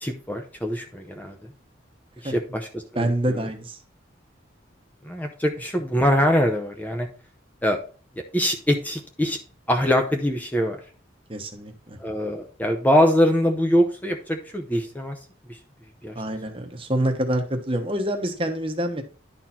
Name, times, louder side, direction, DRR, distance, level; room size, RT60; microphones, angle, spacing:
voice 1, 0.0-1.5 2.2-3.5 5.0-7.1 7.6-7.8 8.3-9.4 9.7-10.8 12.0-15.2 15.5-15.6 16.0-16.2, equal, 10° left, 4 dB, 0.8 m, -23 dB
voice 2, 2.9-3.8 11.3-12.0 16.1-19.0, right 1 dB, 30° right, 5 dB, 1.1 m, -26 dB
11.0 x 4.3 x 4.3 m, 0.39 s
head